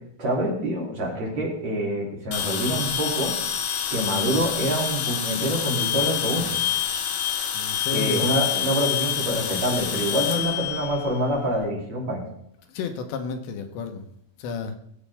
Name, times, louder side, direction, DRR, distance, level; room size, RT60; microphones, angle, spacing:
voice 1, 0.2-3.3 3.9-6.8 7.9-12.2, equal, 40° right, -4 dB, 4.0 m, -26 dB
sound 1, 2.3-11.6, left 9 dB, 70° left, 2.4 m, -27 dB
voice 2, 7.5-8.3 12.7-14.1 14.4-14.8, left 5 dB, 85° left, 6 dB, 3.4 m, -32 dB
20.5 x 8.3 x 3.5 m, 0.71 s
omnidirectional pair, 4.9 m